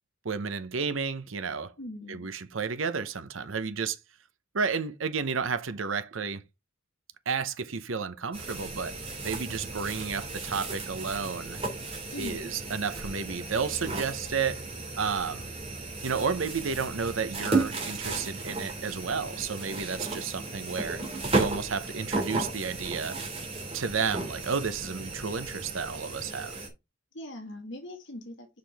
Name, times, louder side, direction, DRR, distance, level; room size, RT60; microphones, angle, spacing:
voice 1, 0.2-1.7 2.1-4.0 4.5-6.4 7.3-11.6 12.2-14.7 15.0-15.5 16.0-21.0 21.3-23.2 23.7-26.6, right 5 dB, 85° right, 0.8 m, -32 dB
voice 2, 1.8-2.3 12.1-12.5 27.1-28.5, left 1 dB, 65° left, 1.8 m, -40 dB
sound 1, 8.3-26.7, right 3 dB, 30° right, 2.6 m, -34 dB
6.7 x 6.0 x 3.4 m
head